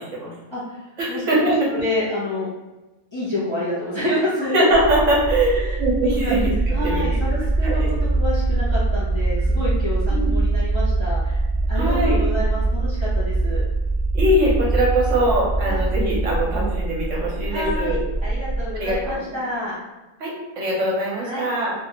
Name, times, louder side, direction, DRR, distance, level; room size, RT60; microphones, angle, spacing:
voice 1, 0.0-0.3 1.0-1.4 4.5-7.2 7.6-7.9 10.1-10.4 11.7-12.2 14.1-18.0 18.7-19.4 20.2-21.7, right 1 dB, 65° right, -4 dB, 1.1 m, -22 dB
voice 2, 0.5-2.5 3.1-4.5 5.5-5.8 6.2-6.3 6.7-11.4 11.7-13.6 15.6-15.8 17.5-19.8 21.1-21.4, left 1 dB, 25° left, -10 dB, 0.7 m, -28 dB
sound 1, 4.7-19.1, right 2 dB, 65° left, 0.5 m, -23 dB
3.0 x 2.4 x 2.8 m, 1.1 s
omnidirectional pair, 1.5 m